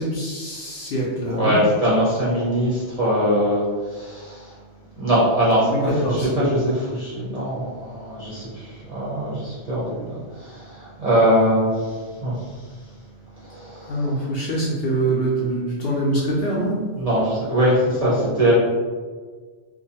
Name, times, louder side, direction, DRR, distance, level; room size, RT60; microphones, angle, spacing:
voice 1, 0.0-1.6 5.7-6.3 13.9-16.7, right 1 dB, 65° left, -4 dB, 0.7 m, -24 dB
voice 2, 1.3-4.5 5.0-11.9 12.2-12.3 13.4-14.1 17.0-18.5, equal, 40° right, -9 dB, 0.6 m, -22 dB
2.4 x 2.2 x 2.7 m, 1.5 s
omnidirectional pair, 1.3 m